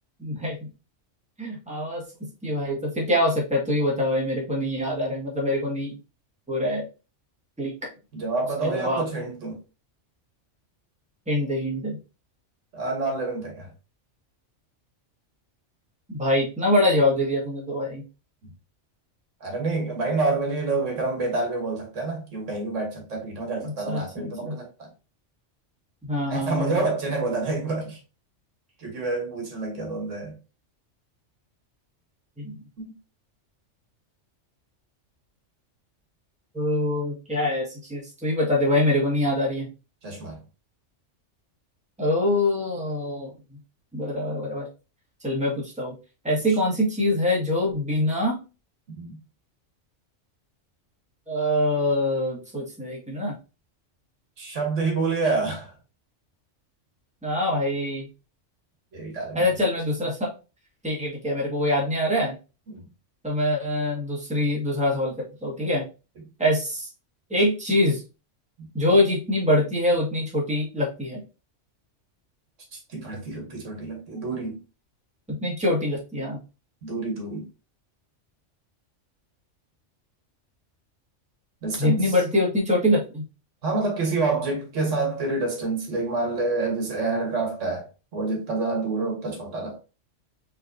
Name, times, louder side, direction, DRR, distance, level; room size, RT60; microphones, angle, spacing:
voice 1, 0.2-0.7 1.4-2.0 2.4-5.9 6.5-6.8 7.6-7.9 8.6-9.0 11.3-12.0 16.1-18.0 23.6-24.6 26.0-26.8 32.4-32.5 36.5-39.7 42.0-43.3 43.9-44.7 45.2-45.9 46.2-48.4 51.3-53.3 57.2-58.1 59.3-60.3 60.8-62.3 63.2-65.2 65.4-65.8 66.4-66.9 67.3-68.0 68.7-71.2 75.4-76.4 81.8-83.2, left 1 dB, 5° right, 1.5 m, -24 dB
voice 2, 8.1-9.6 12.7-13.7 19.4-24.9 26.3-28.0 28.8-30.3 32.8-32.9 40.0-40.4 46.3-46.4 48.9-49.2 54.4-55.7 58.9-59.4 72.7-74.6 76.8-77.4 81.6-82.1 83.6-89.8, right 3 dB, 80° right, 1.6 m, -28 dB
4.3 x 3.5 x 2.6 m
omnidirectional pair, 1.3 m